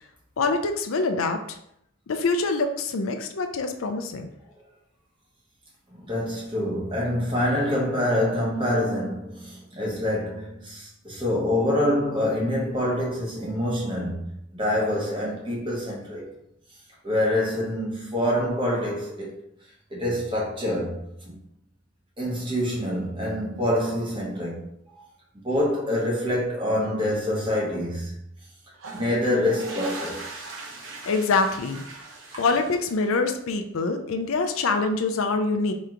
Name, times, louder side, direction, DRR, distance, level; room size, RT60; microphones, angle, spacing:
voice 1, 0.4-1.6 2.1-4.3 31.1-31.8 32.4-35.7, left 3 dB, 85° left, 0.5 m, -25 dB
voice 2, 5.9-14.3 14.6-16.3 17.0-19.4 19.9-21.4 22.2-24.7 25.0-25.1 25.3-28.1 28.9-30.2, left 1 dB, 25° right, 1.3 m, -26 dB
sound 1, 28.7-33.3, right 3 dB, 75° right, 0.9 m, -40 dB
3.3 x 3.1 x 3.7 m
head